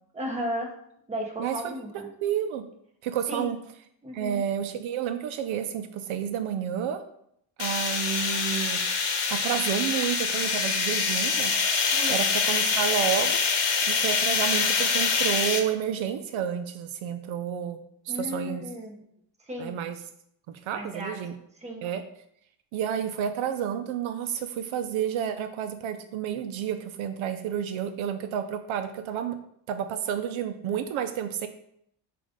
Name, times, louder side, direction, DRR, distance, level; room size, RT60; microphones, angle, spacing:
voice 1, 0.1-0.7 1.1-2.1 3.3-3.5 4.0-4.4 11.9-12.2 18.1-19.0 19.5-19.8 20.7-21.2 21.6-21.9, equal, 15° right, 0 dB, 1.0 m, -34 dB
voice 2, 1.4-2.7 3.0-3.6 4.1-7.0 7.6-8.8 9.3-11.5 12.1-13.4 13.9-18.6 19.6-20.0 20.7-21.3 21.8-22.0 22.7-29.4 29.7-31.5, right 9 dB, 70° right, 8 dB, 0.6 m, -30 dB
sound 1, 7.6-15.6, left 5 dB, 60° left, 1.0 m, -25 dB
7.4 x 2.6 x 5.1 m, 0.72 s
cardioid pair, 155°, 49 cm